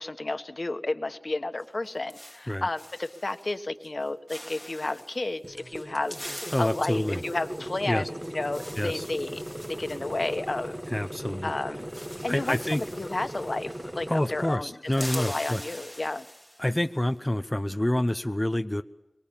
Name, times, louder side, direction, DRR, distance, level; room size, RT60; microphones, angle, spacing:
voice 1, 0.0-9.4 9.8-10.8 11.4-11.9 12.2-14.7 15.0-16.2, left 2 dB, 60° left, 8 dB, 1.4 m, -32 dB
sound 1, 1.6-3.6 3.8-4.0 4.3-5.2 5.7-11.2 11.5-11.6 11.8-14.2 14.5-16.9, equal, ahead, 2.1 m, -44 dB
sound 2, 5.4-14.6, right 1 dB, 25° right, 1.5 m, -38 dB
voice 2, 6.5-7.2 7.9-8.1 8.8-9.0 10.9-11.5 12.3-12.8 14.1-15.6 16.6-18.8, left 1 dB, 20° left, 8 dB, 0.7 m, -27 dB
23.5 x 23.0 x 7.2 m, 0.97 s
wide cardioid pair, 45°, 0 cm